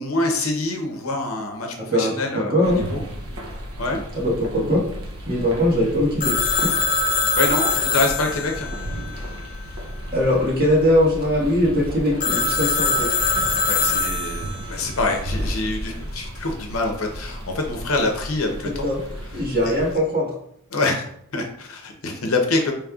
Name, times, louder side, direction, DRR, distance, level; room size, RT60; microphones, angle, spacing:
voice 1, 0.0-3.0 3.8-4.0 7.4-8.7 13.7-18.8 19.7-19.8 20.7-21.0 21.3-22.7, left 2 dB, 65° left, 3 dB, 0.8 m, -25 dB
voice 2, 1.8-2.8 4.1-4.8 5.3-6.3 10.1-13.1 18.8-19.0 19.3-20.3, equal, 45° right, -5 dB, 1.5 m, -21 dB
sound 1, 2.6-19.9, equal, 75° right, 0.7 m, -34 dB
Telephone, 6.2-9.8 12.2-14.7, left 4 dB, 35° left, 0.4 m, -23 dB
5.1 x 3.2 x 2.4 m, 0.69 s
head